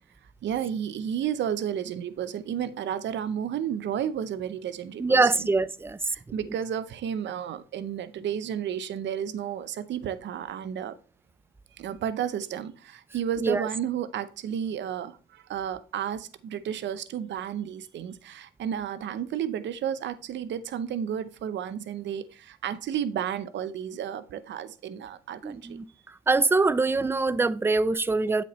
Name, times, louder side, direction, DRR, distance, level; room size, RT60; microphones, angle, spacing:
voice 1, 0.4-5.5 6.1-11.0 11.8-25.8, right 9 dB, 65° right, 0.7 m, -32 dB
voice 2, 5.0-6.0 13.4-13.7 25.4-25.8 26.3-28.4, right 3 dB, 10° right, 0.4 m, -23 dB
7.8 x 6.3 x 3.1 m
cardioid pair, 90°, 20 cm